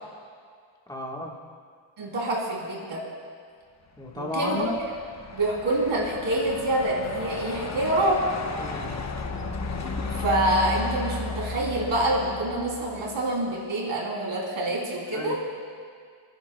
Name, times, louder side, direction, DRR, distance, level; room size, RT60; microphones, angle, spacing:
voice 1, 0.9-1.4 4.0-4.8 8.6-8.9 15.1-15.3, left 1 dB, 10° left, -2 dB, 1.3 m, -33 dB
voice 2, 2.0-3.0 4.2-4.7 5.3-8.2 10.0-15.4, right 1 dB, 85° right, -3 dB, 3.1 m, -26 dB
Truck, 4.1-13.4, left 3 dB, 35° left, 1.0 m, -34 dB
29.5 x 10.0 x 2.2 m, 2.1 s
wide cardioid pair, 105°, 48 cm